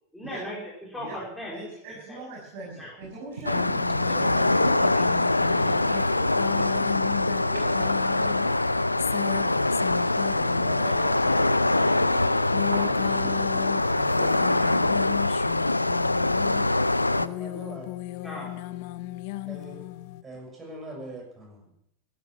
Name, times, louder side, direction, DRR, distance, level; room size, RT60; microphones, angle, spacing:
voice 1, 0.1-0.6 0.9-2.2 2.8-2.9 18.2-18.5, left 1 dB, ahead, -4 dB, 4.4 m, -39 dB
voice 2, 1.5-3.6 3.9-8.7 9.1-9.6 10.5-14.1, right 3 dB, 45° right, -4 dB, 6.6 m, -42 dB
sound 1, 2.7-10.9 11.3-14.7, right 3 dB, 65° right, 4.6 m, -41 dB
sound 2, 3.5-17.3, left 2 dB, 85° left, 0.5 m, -24 dB
sound 3, 3.5-20.2, left 16 dB, 45° left, 0.8 m, -36 dB
voice 3, 17.2-17.9 19.5-19.8 20.2-21.6, right 1 dB, 15° right, 0 dB, 6.8 m, -42 dB
15.0 x 11.5 x 7.3 m, 0.78 s
figure-of-eight pair, 90°, 0 cm